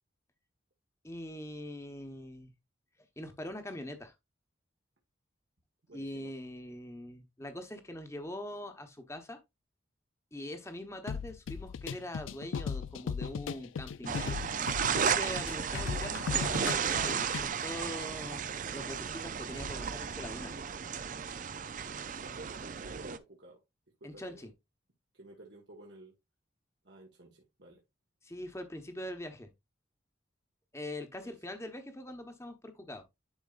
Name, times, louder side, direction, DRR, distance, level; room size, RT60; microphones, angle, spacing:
voice 1, 1.0-2.5 3.2-4.1 5.9-9.4 10.3-14.4 14.8-18.4 18.7-20.5 24.0-24.5 28.2-29.5 30.7-33.0, left 1 dB, 15° left, 1.0 m, -43 dB
voice 2, 5.9-6.3 22.2-23.6 24.0-24.5 25.1-26.1 26.8-27.8 31.2-31.4, right 2 dB, 65° right, 1.5 m, -52 dB
sound 1, 11.1-17.5, left 6 dB, 85° left, 0.4 m, -37 dB
sound 2, 14.1-23.2, right 7 dB, 40° right, 0.5 m, -34 dB
10.5 x 4.6 x 2.4 m
head